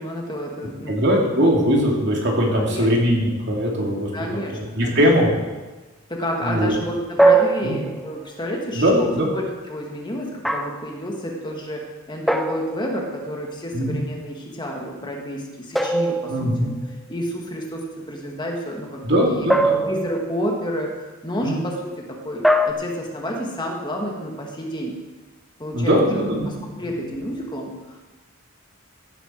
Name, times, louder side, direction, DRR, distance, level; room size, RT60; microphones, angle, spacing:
voice 1, 0.0-1.0 2.5-2.9 4.1-5.0 6.1-16.5 17.1-19.4 19.8-25.0 25.6-26.0 26.5-28.0, equal, 20° left, 0 dB, 1.7 m, -30 dB
voice 2, 0.9-4.1 4.5-5.3 6.4-6.8 7.6-7.7 8.7-9.3 13.7-14.0 16.3-16.7 19.0-19.8 21.4-21.6 25.7-26.5, equal, 55° right, -1 dB, 2.7 m, -20 dB
sound 1, 7.2-8.3 10.4-10.9 12.3-13.2 15.8-16.9 19.5-20.4 22.4-22.7, right 2 dB, ahead, 0.5 m, -21 dB
15.5 x 10.0 x 4.5 m, 1.2 s
head